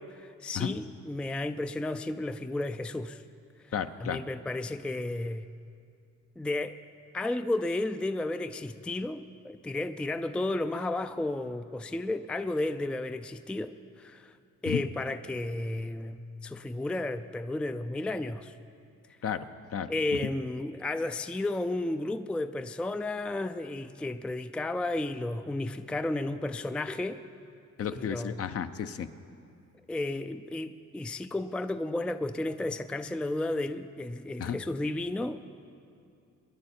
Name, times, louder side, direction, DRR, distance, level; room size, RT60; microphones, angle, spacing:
voice 1, 0.0-3.2 4.0-5.5 6.4-6.8 7.1-14.4 14.6-18.5 19.9-27.2 27.9-28.4 29.9-35.5, left 2 dB, 5° left, 10 dB, 0.4 m, -33 dB
voice 2, 3.7-4.2 14.7-14.8 19.2-19.9 27.8-29.1 34.4-34.6, left 8 dB, 50° left, 10 dB, 0.7 m, -33 dB
23.0 x 10.5 x 4.4 m, 2.5 s
cardioid pair, 90°, 30 cm